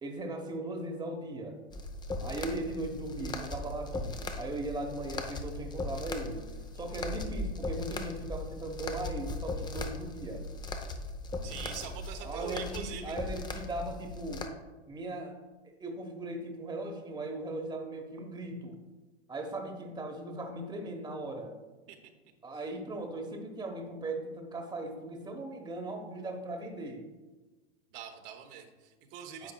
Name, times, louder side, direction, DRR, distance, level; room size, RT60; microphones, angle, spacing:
voice 1, 0.0-1.6 2.2-6.5 6.8-10.4 12.2-14.4 14.9-15.3 15.8-18.8 19.3-21.6 22.4-27.0 29.4-29.5, right 2 dB, 15° right, 3 dB, 1.1 m, -38 dB
sound 1, 1.7-14.5, left 2 dB, 15° left, 0.6 m, -38 dB
voice 2, 11.4-13.2 21.9-22.1 22.5-22.6 27.9-29.5, right 8 dB, 55° right, 5 dB, 1.0 m, -43 dB
9.9 x 7.1 x 2.3 m, 1.2 s
hypercardioid pair, 105°, 34 cm